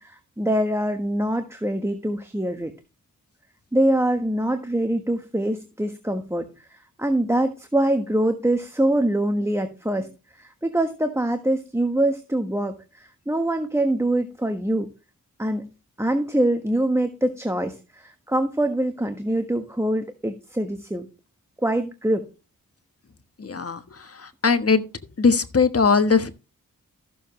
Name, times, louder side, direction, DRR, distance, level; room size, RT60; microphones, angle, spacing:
voice 1, 0.0-2.7 3.7-10.1 10.3-14.9 15.4-15.6 16.0-21.1 21.6-22.3, right 1 dB, 10° right, 1.3 m, -24 dB
voice 2, 23.4-24.8 25.2-26.3, left 5 dB, 45° left, 1.3 m, -20 dB
14.0 x 7.2 x 3.2 m
cardioid pair, 60°, 34 cm